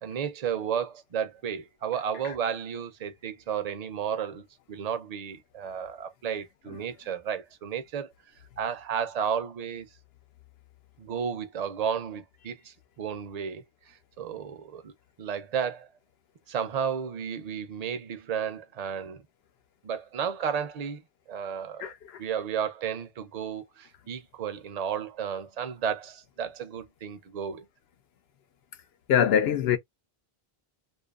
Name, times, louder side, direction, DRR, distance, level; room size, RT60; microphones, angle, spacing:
voice 1, 0.0-8.1 8.6-9.9 11.0-15.9 16.5-19.2 19.8-21.0 21.3-21.9 22.2-27.7, right 7 dB, 50° right, 0.5 m, -33 dB
voice 2, 29.1-29.8, left 9 dB, 80° left, 0.8 m, -22 dB
2.6 x 2.4 x 2.3 m
omnidirectional pair, 1.0 m